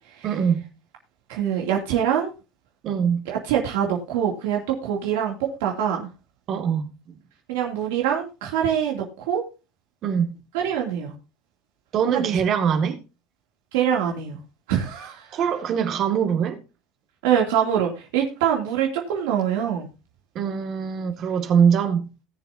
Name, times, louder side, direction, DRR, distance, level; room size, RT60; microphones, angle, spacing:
voice 1, 0.2-0.7 2.8-3.2 6.5-6.9 10.0-10.4 11.9-13.0 15.3-16.6 20.4-22.1, right 7 dB, 45° right, 2.0 m, -22 dB
voice 2, 1.3-2.3 3.3-5.3 5.6-6.1 7.5-9.4 10.5-11.1 12.1-12.3 13.7-14.4 14.7-15.4 17.2-19.9, right 9 dB, 85° right, 2.6 m, -24 dB
19.0 x 7.2 x 2.7 m
supercardioid pair, 125°, 0 cm